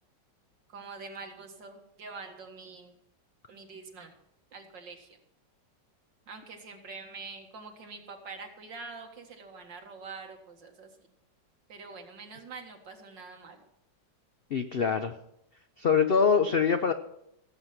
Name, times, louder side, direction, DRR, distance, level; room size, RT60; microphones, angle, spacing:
voice 1, 0.7-2.9 3.5-4.1 4.5-5.1 6.3-10.9 11.7-13.6, right 4 dB, 85° right, 3 dB, 2.5 m, -45 dB
voice 2, 14.5-15.1 15.8-16.9, left 6 dB, 80° left, 8 dB, 0.5 m, -24 dB
17.0 x 8.0 x 5.9 m, 0.81 s
omnidirectional pair, 1.9 m